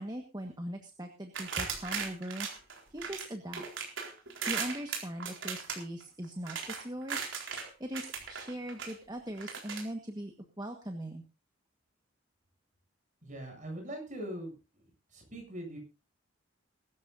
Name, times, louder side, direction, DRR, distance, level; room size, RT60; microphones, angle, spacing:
voice 1, 0.0-2.5 2.9-3.6 4.5-7.3 7.8-11.2, right 1 dB, 20° right, 4 dB, 1.5 m, -40 dB
sound 1, 1.3-3.3 3.5-7.7 7.9-8.9 9.4-9.8, right 6 dB, 70° right, 4.1 m, -37 dB
voice 2, 13.2-14.5 15.1-15.8, right 1 dB, 40° right, 2 dB, 7.6 m, -41 dB
22.0 x 13.0 x 2.7 m, 0.31 s
head